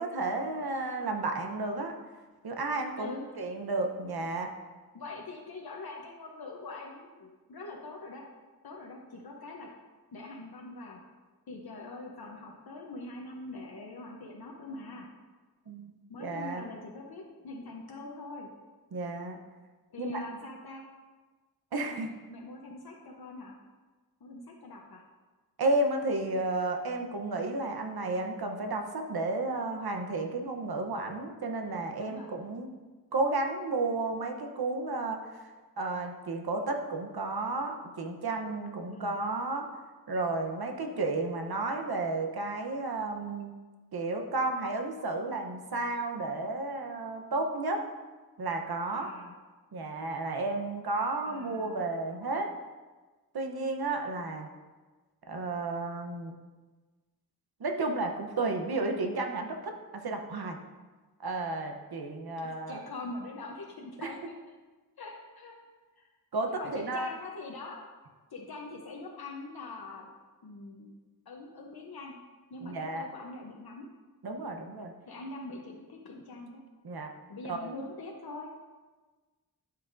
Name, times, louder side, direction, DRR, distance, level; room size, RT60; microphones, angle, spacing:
voice 1, 0.0-1.9 2.4-4.5 15.7-15.9 16.2-16.6 18.9-19.4 20.0-20.2 21.7-22.1 25.6-32.7 33.1-39.7 40.1-43.5 43.9-47.8 48.4-49.1 49.7-52.5 53.3-54.5 55.3-56.3 57.6-60.6 61.2-62.8 64.0-64.1 66.3-67.1 72.6-73.1 74.2-74.9 76.8-77.1 77.5-77.7, right 2 dB, 75° right, 3 dB, 0.9 m, -32 dB
voice 2, 4.9-8.2 8.6-9.7 10.1-11.0 11.5-15.1 16.1-18.5 19.9-20.8 21.9-23.5 24.2-25.0 32.0-32.3 38.9-39.1 48.9-49.3 51.2-51.9 62.4-64.3 65.0-65.6 66.0-66.1 66.5-67.8 68.3-70.1 70.4-70.9 71.3-72.1 72.5-73.9 75.1-76.6 77.3-78.5, left 2 dB, 75° left, -1 dB, 0.9 m, -43 dB
12.0 x 5.7 x 2.6 m, 1.3 s
wide cardioid pair, 70°, 37 cm